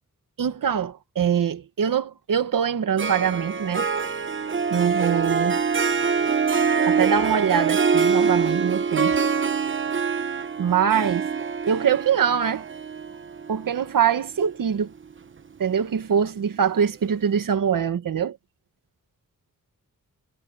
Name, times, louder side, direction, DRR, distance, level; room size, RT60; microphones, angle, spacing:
voice 1, 0.4-3.9 4.7-5.6 6.9-9.2 10.6-11.3 11.7-12.7 13.5-14.9 15.6-18.4, right 8 dB, 80° right, 1.9 m, -23 dB
Harp, 3.0-14.4, right 5 dB, 35° right, 0.9 m, -24 dB
wide cardioid pair, 135°, 33 cm